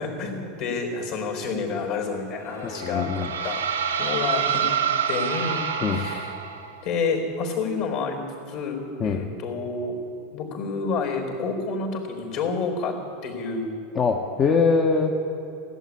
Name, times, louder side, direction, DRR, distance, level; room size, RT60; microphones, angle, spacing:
voice 1, 0.0-3.6 4.0-4.6 5.1-6.3 6.8-8.2 8.5-10.0 10.3-12.9 13.2-13.7, left 4 dB, 55° left, 2 dB, 4.0 m, -29 dB
sound 1, 2.5-6.8, right 7 dB, 80° right, 1.2 m, -27 dB
voice 2, 2.6-3.3 5.8-6.0 9.0-9.2 13.9-15.1, left 5 dB, 30° left, 1 dB, 1.1 m, -22 dB
16.5 x 8.2 x 9.9 m, 2.6 s
figure-of-eight pair, 85°, 0 cm